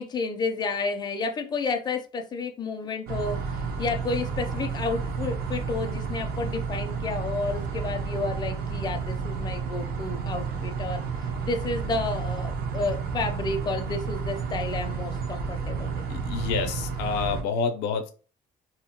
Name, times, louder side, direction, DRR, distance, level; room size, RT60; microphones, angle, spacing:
voice 1, 0.0-11.0 11.4-16.0, left 3 dB, 25° left, 5 dB, 0.5 m, -31 dB
sound 1, 3.1-17.4, right 5 dB, 65° right, 0.6 m, -31 dB
voice 2, 16.1-18.1, left 5 dB, 90° left, 6 dB, 0.5 m, -28 dB
2.8 x 2.1 x 2.8 m, 0.36 s
cardioid pair, 110°, 17 cm